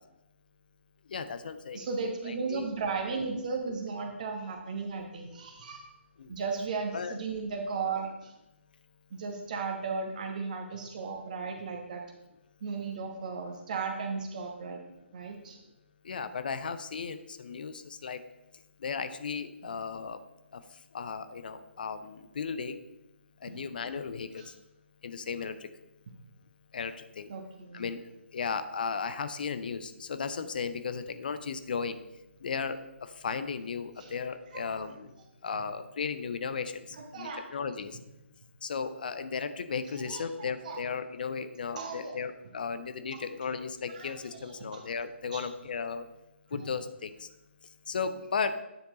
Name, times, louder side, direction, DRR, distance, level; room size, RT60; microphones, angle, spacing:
voice 1, 1.1-1.8 2.2-2.7 6.2-6.3 6.9-7.2 16.0-18.2 18.8-20.2 20.5-20.6 20.9-22.8 23.4-24.4 25.0-25.5 26.7-27.3 27.7-28.0 28.3-32.0 32.4-35.1 35.4-36.8 37.1-38.0 38.6-46.0 46.5-47.3 47.9-48.6, left 5 dB, 45° left, 11 dB, 0.5 m, -35 dB
voice 2, 1.7-5.9 6.3-8.3 9.1-12.0 12.6-14.8 15.1-15.6 24.3-24.5 27.3-27.9 34.0-34.1 34.5-34.9 36.9-37.5 39.9-40.8 41.7-42.2 43.1-43.2 43.9-44.8 45.3-45.5 46.5-46.7, right 4 dB, 40° right, 4 dB, 1.2 m, -36 dB
9.8 x 4.4 x 3.9 m, 0.92 s
figure-of-eight pair, 140°, 7 cm